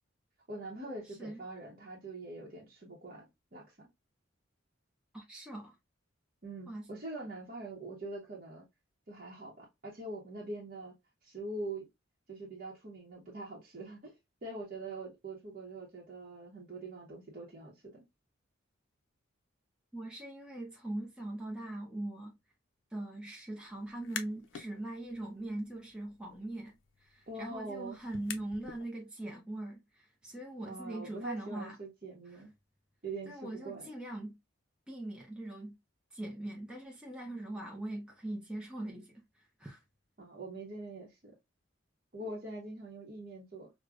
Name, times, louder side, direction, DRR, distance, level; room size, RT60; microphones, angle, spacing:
voice 1, 0.5-3.9 6.4-8.6 9.1-10.9 11.2-11.9 12.3-14.2 14.4-18.0 27.3-28.0 30.6-32.5 33.0-33.9 40.2-41.3 42.1-43.7, right 2 dB, 40° right, 0.8 m, -43 dB
voice 2, 1.0-1.4 5.1-5.8 6.7-6.9 19.9-22.3 22.9-26.7 27.0-31.8 32.3-32.4 33.3-34.3 34.9-35.7 36.1-39.8, right 1 dB, 5° right, 0.5 m, -41 dB
sound 1, 23.9-24.7 25.1-28.8, left 8 dB, 70° left, 0.5 m, -47 dB
4.8 x 2.1 x 2.3 m
head